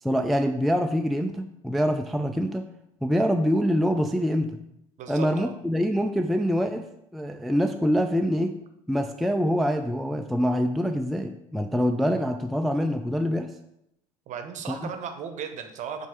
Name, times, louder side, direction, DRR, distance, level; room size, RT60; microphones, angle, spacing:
voice 1, 0.0-2.7 3.0-4.6 5.1-6.9 7.1-8.5 8.9-13.5 14.7-14.9, equal, ahead, 5 dB, 0.3 m, -25 dB
voice 2, 5.0-5.5 14.3-16.1, right 7 dB, 45° right, 7 dB, 0.9 m, -36 dB
7.2 x 2.7 x 4.9 m, 0.82 s
figure-of-eight pair, 70°, 18 cm